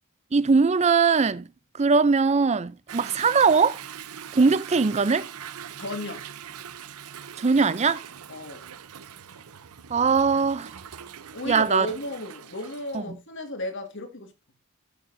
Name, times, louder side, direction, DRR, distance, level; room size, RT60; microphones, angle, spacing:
voice 1, 0.3-1.5 1.7-3.8 4.3-5.3 7.4-8.0 9.9-10.7 11.5-11.9 12.9-13.2, right 5 dB, 30° right, 0.5 m, -21 dB
Toilet flush / Drip / Trickle dribble, 2.9-13.0, right 8 dB, 85° right, 0.7 m, -42 dB
voice 2, 5.8-6.2 8.3-8.7 11.3-14.3, left 1 dB, 55° left, 2.1 m, -34 dB
15.5 x 6.9 x 2.6 m
head